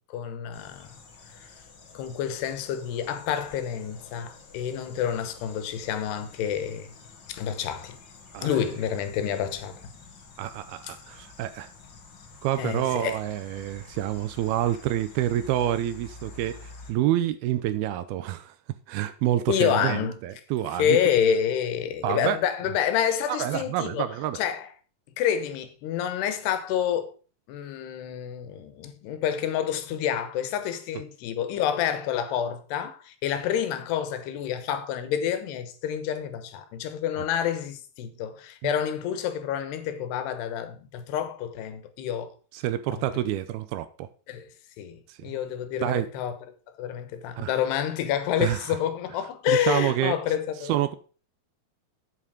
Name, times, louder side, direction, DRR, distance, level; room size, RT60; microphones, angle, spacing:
voice 1, 0.1-0.9 1.4-1.5 1.9-6.9 7.3-8.0 8.4-9.8 10.9-11.0 12.6-13.2 19.5-20.2 20.8-24.1 24.3-24.7 25.2-27.1 27.5-42.3 42.9-43.0 44.3-44.5 44.8-46.3 46.8-50.7, left 9 dB, 85° left, 3.1 m, -28 dB
sound 1, 0.5-16.9, left 4 dB, 55° left, 1.3 m, -49 dB
voice 2, 10.4-11.7 12.4-18.5 18.9-21.0 22.0-22.4 23.3-24.4 38.6-38.7 42.5-44.1 45.1-45.4 45.8-46.1 47.4-47.5 48.4-48.7 49.5-50.2 50.7-51.0, right 12 dB, 80° right, 2.4 m, -28 dB
8.4 x 7.6 x 5.0 m
omnidirectional pair, 4.7 m